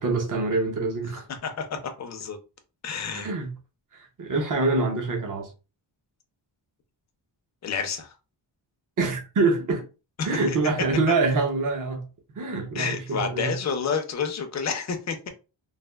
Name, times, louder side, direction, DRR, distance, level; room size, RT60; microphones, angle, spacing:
voice 1, 0.0-1.3 3.1-3.5 3.9-5.5 9.0-9.8 10.2-12.1 12.3-13.5, right 3 dB, 45° right, 0.7 m, -25 dB
voice 2, 1.4-2.4 2.8-3.3 7.6-8.1 10.2-10.6 12.7-15.3, left 6 dB, 40° left, 0.5 m, -29 dB
3.3 x 2.3 x 2.2 m
wide cardioid pair, 160°, 45 cm